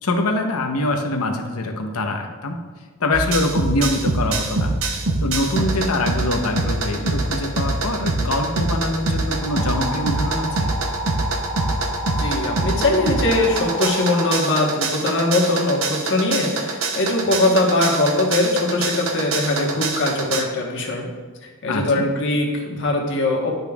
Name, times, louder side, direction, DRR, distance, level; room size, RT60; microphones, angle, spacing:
voice 1, 0.0-2.6 3.0-4.8 5.2-10.7 21.7-22.1, left 2 dB, 80° left, 4 dB, 0.8 m, -24 dB
sound 1, 3.1-20.4, right 2 dB, 65° right, 0.7 m, -24 dB
sound 2, 9.3-14.3, right 1 dB, 5° left, 1.8 m, -30 dB
voice 2, 12.2-21.0 21.6-23.5, left 2 dB, 55° left, -1 dB, 1.2 m, -21 dB
11.0 x 5.2 x 2.4 m, 1.4 s
head